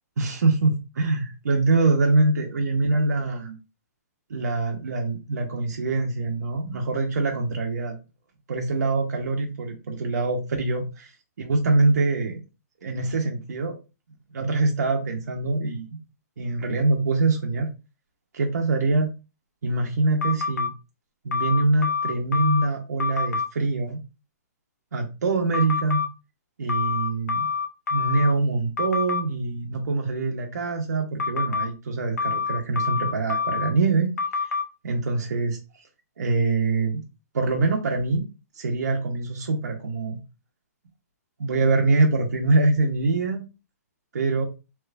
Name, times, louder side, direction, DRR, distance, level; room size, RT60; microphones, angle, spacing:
voice 1, 0.2-3.6 4.3-8.0 8.5-11.1 11.4-12.4 12.8-13.8 14.3-15.9 16.4-17.7 18.3-19.1 19.6-20.7 21.2-24.0 24.9-26.0 26.6-27.5 27.9-34.1 34.4-34.5 34.8-35.6 36.2-37.0 37.3-38.3 38.5-40.2 41.4-43.4 44.1-44.5, right 3 dB, 85° right, 1 dB, 0.7 m, -24 dB
sound 1, 20.2-20.7 21.3-22.7 23.0-23.5 25.5-26.1 26.7-28.3 28.8-29.2 31.2-31.7 32.2-33.7 34.2-34.6, left 5 dB, 75° left, 0.7 m, -26 dB
3.3 x 3.0 x 2.3 m, 0.29 s
hypercardioid pair, 165°, 9 cm